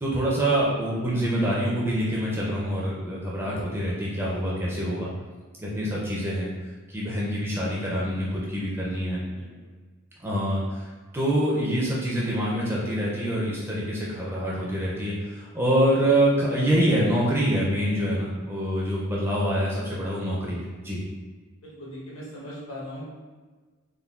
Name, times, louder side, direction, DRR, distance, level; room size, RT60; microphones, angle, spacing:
voice 1, 0.0-5.1 5.6-6.5 6.9-9.2 10.2-21.0, right 1 dB, 10° right, -5 dB, 0.4 m, -25 dB
voice 2, 9.3-9.7 21.6-23.0, equal, 70° left, -5 dB, 0.9 m, -39 dB
3.6 x 2.2 x 2.3 m, 1.4 s
head